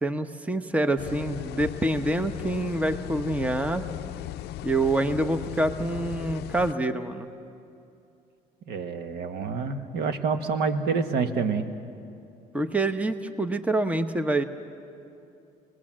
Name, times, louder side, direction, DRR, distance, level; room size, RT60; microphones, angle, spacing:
voice 1, 0.0-3.9 4.6-7.2 12.5-14.4, right 2 dB, 10° right, 9 dB, 0.9 m, -26 dB
sound 1, 1.0-6.7, left 14 dB, 75° left, 0.5 m, -37 dB
voice 2, 8.7-11.7, right 5 dB, 70° right, 8 dB, 1.5 m, -27 dB
28.0 x 20.5 x 7.5 m, 2.6 s
cardioid pair, 110°, 17 cm